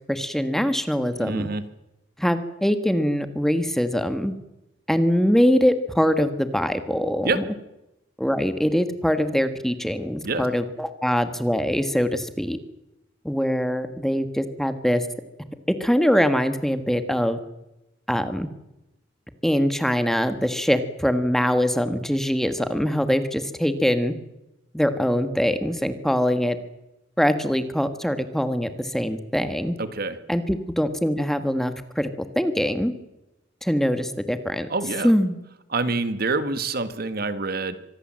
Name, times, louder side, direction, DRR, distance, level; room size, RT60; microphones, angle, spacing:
voice 1, 0.1-1.5 2.2-4.3 4.9-7.4 8.2-12.6 13.2-15.1 15.7-17.4 18.1-18.5 19.4-24.1 24.7-26.6 27.2-29.7 30.3-32.9 33.6-34.7 35.0-35.4, equal, ahead, 9 dB, 1.5 m, -23 dB
voice 2, 1.2-1.6 7.2-7.4 10.2-10.4 29.8-30.2 34.7-35.1 35.7-37.8, right 3 dB, 55° right, 12 dB, 1.7 m, -26 dB
25.0 x 19.5 x 7.6 m, 0.91 s
head